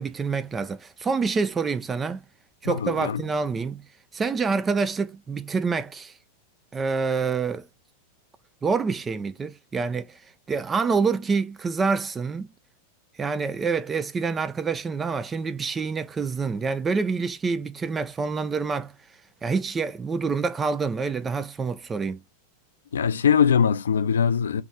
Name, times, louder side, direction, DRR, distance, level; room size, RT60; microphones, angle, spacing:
voice 1, 0.0-2.2 2.6-3.8 4.1-6.2 6.7-7.7 8.6-10.2 10.5-12.5 13.2-18.9 19.4-22.2, right 4 dB, 20° right, 0.3 m, -27 dB
voice 2, 2.6-3.2 22.9-24.6, left 7 dB, 65° left, 0.4 m, -22 dB
3.5 x 3.0 x 4.8 m
figure-of-eight pair, 90°, 0 cm